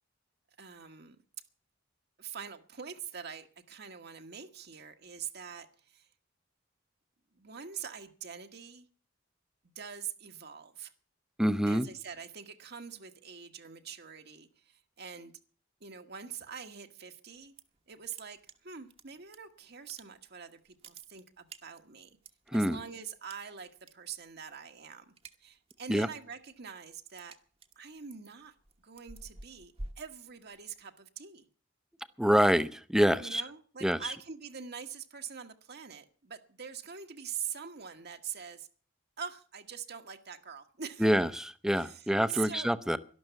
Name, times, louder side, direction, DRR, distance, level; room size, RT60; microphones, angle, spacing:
voice 1, 0.6-1.2 2.2-6.1 7.3-8.9 9.7-10.9 11.6-15.3 15.8-17.5 17.9-22.2 22.5-25.1 25.4-27.4 27.7-28.5 28.8-31.5 33.2-38.7 39.2-41.1 41.8-42.7, right 7 dB, 60° right, 5 dB, 1.4 m, -44 dB
voice 2, 11.4-11.9 22.5-22.8 25.9-26.1 32.2-33.4 33.8-34.1 41.0-43.0, equal, 5° right, 13 dB, 0.7 m, -26 dB
sound 1, 17.3-17.8 18.0-19.4 19.7-20.4 20.7-22.7 23.3-23.9 24.2-24.5 24.8-25.9 26.3-30.8, right 2 dB, 30° right, 1.1 m, -49 dB
12.0 x 12.0 x 8.1 m, 0.43 s
head